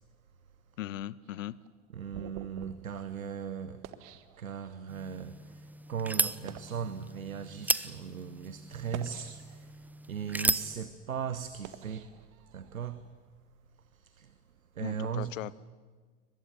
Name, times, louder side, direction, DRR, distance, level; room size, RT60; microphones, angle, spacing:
voice 1, 0.8-1.6 14.8-15.5, left 13 dB, 65° left, 0.9 m, -38 dB
sound 1, 1.2-5.0 5.6-5.8 6.3-6.9 7.6-7.8 8.7-9.8 10.3-12.9, right 12 dB, 45° right, 1.6 m, -49 dB
voice 2, 1.9-3.8 4.4-12.1 12.5-13.1 13.9-14.3 14.7-15.4, right 7 dB, 80° right, 1.0 m, -38 dB
sound 2, 4.9-10.8, right 2 dB, 5° right, 0.6 m, -35 dB
22.5 x 21.0 x 9.5 m
figure-of-eight pair, 70°, 41 cm